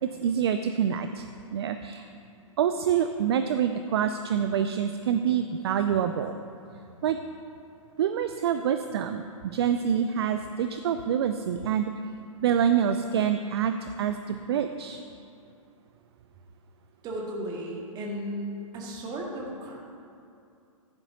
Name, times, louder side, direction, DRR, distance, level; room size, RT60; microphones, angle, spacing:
voice 1, 0.0-1.2 1.5-2.1 2.6-6.3 7.0-7.2 8.0-11.9 12.4-15.0, right 8 dB, 50° right, 8 dB, 0.5 m, -26 dB
voice 2, 17.0-19.8, equal, 25° right, -2 dB, 1.9 m, -35 dB
15.0 x 9.7 x 2.8 m, 2.5 s
figure-of-eight pair, 115°, 17 cm